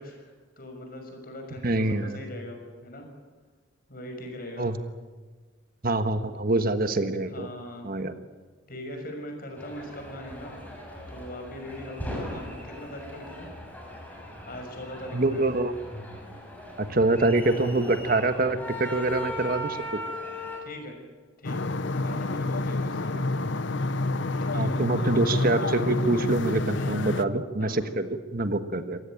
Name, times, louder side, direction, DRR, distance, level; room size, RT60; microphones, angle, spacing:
voice 1, 0.0-3.1 3.9-4.7 6.2-6.3 7.3-7.9 8.7-10.6 11.1-13.5 14.4-15.5 18.7-18.8 20.6-21.0 21.4-23.1 24.4-24.8 26.8-27.0 27.6-27.8, left 1 dB, 50° left, 4 dB, 6.2 m, -41 dB
voice 2, 1.6-2.2 4.6-4.8 5.8-7.5 7.8-8.1 15.1-15.7 16.8-19.8 24.5-29.0, right 2 dB, 50° right, 9 dB, 1.4 m, -25 dB
sound 1, 9.6-20.6, left 1 dB, 10° left, 6.3 m, -39 dB
sound 2, 21.4-27.2, left 2 dB, 70° left, 0.9 m, -28 dB
28.0 x 16.0 x 9.0 m, 1.4 s
head